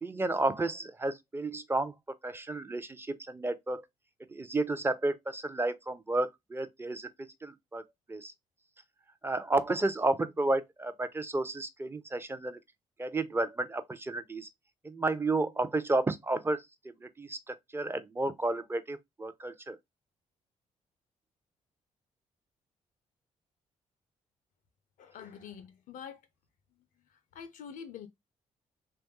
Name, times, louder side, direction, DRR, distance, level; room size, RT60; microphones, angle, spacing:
voice 1, 0.0-1.9 2.2-3.8 4.3-7.1 7.4-7.8 8.1-8.3 9.2-12.6 13.0-14.5 14.8-16.6 17.0-19.8, right 2 dB, 15° right, 0.5 m, -32 dB
voice 2, 25.0-26.2 27.3-28.1, left 7 dB, 50° left, 0.4 m, -45 dB
3.0 x 2.2 x 2.8 m
figure-of-eight pair, 40°, 17 cm